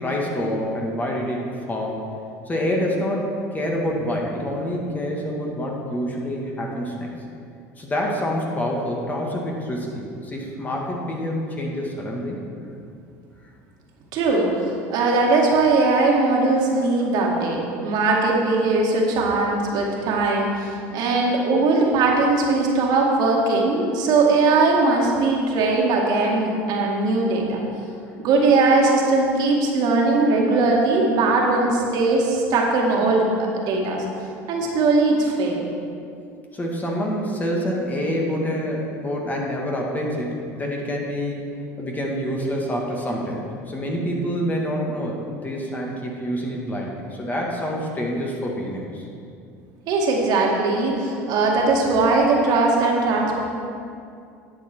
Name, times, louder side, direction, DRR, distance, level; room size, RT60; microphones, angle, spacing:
voice 1, 0.0-2.1 2.5-7.1 7.8-12.4 36.5-41.5 41.8-49.1, equal, 20° left, -1 dB, 2.0 m, -27 dB
voice 2, 14.1-14.5 14.9-27.6 28.2-34.0 34.5-35.6 49.9-53.4, right 3 dB, 60° right, -1 dB, 2.0 m, -20 dB
11.0 x 7.8 x 4.6 m, 2.4 s
supercardioid pair, 95°, 8 cm